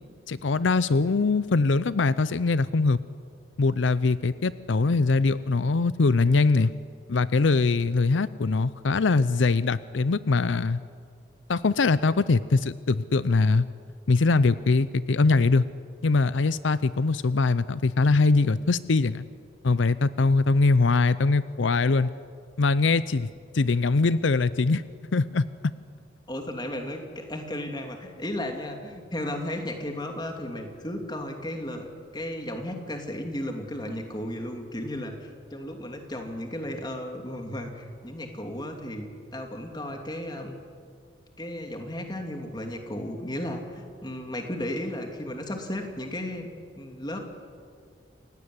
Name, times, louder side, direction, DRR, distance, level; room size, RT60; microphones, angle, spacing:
voice 1, 0.3-3.0 3.6-6.7 7.1-10.8 11.5-13.7 14.1-15.6 16.0-19.3 19.6-22.1 22.6-23.3 23.5-24.8 25.1-25.5, left 3 dB, 85° left, 16 dB, 0.6 m, -22 dB
voice 2, 26.3-39.1 39.3-40.6 41.4-46.5 46.8-47.2, left 1 dB, 20° left, 4 dB, 2.7 m, -34 dB
28.5 x 16.5 x 9.7 m, 2.2 s
head